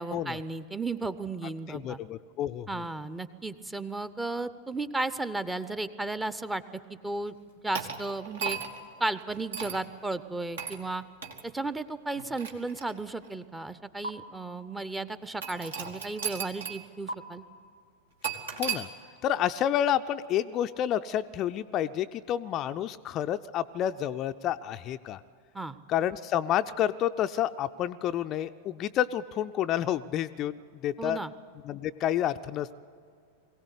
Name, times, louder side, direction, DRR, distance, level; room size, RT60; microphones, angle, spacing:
voice 1, 0.0-2.0 2.7-7.4 7.6-8.6 9.0-11.0 11.4-17.4 25.5-25.8 31.0-31.3, right 2 dB, 10° right, 14 dB, 0.7 m, -34 dB
voice 2, 1.7-2.8 18.5-18.9 19.2-25.2 25.9-30.6 30.8-31.2 31.6-32.7, left 11 dB, 35° left, 9 dB, 0.5 m, -29 dB
sound 1, 7.7-8.9 9.5-9.8 10.6-10.8 11.2-11.4 12.1-13.3 14.0-14.1 15.4-16.8 17.1-17.2 18.2-18.8, right 6 dB, 65° right, 1.8 m, -35 dB
22.5 x 17.0 x 8.3 m, 2.3 s
figure-of-eight pair, 90°, 0 cm